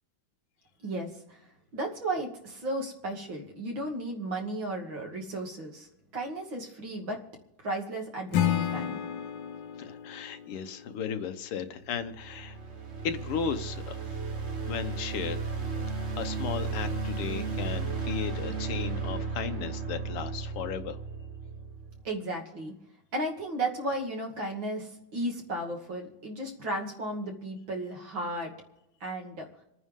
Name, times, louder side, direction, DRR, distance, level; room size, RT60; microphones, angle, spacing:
voice 1, 0.8-1.4 1.7-7.2 7.6-9.0 22.0-22.7 23.1-28.5 29.0-29.5, right 1 dB, 60° right, 1 dB, 3.2 m, -34 dB
Acoustic guitar / Strum, 8.3-11.5, left 10 dB, 65° left, 1.3 m, -32 dB
voice 2, 9.8-12.6 13.0-14.0 14.7-15.5 16.2-21.0, left 7 dB, 90° left, 8 dB, 2.0 m, -35 dB
sound 1, 11.8-22.0, right 4 dB, 35° right, 1.4 m, -34 dB
28.0 x 9.4 x 3.7 m, 0.85 s
omnidirectional pair, 2.4 m